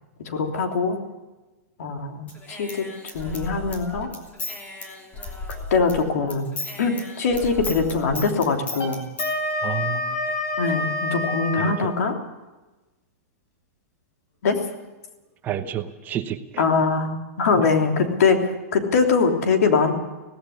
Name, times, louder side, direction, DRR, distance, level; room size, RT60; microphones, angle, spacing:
voice 1, 0.2-1.0 1.8-4.1 5.7-6.5 6.8-9.0 10.6-12.1 14.4-14.6 16.6-19.9, left 4 dB, 75° left, 3 dB, 3.2 m, -22 dB
Human voice / Scissors, 2.3-6.0 6.3-9.3, left 2 dB, 15° left, 3.2 m, -35 dB
Wind instrument woodwind instrument, 8.7-11.8, left 2 dB, 40° left, 4.6 m, -27 dB
voice 2, 9.6-10.4 11.6-11.9 15.4-16.6 17.6-17.7, right 10 dB, 20° right, 9 dB, 0.9 m, -30 dB
17.5 x 16.0 x 9.8 m, 1.1 s
supercardioid pair, 160°, 9 cm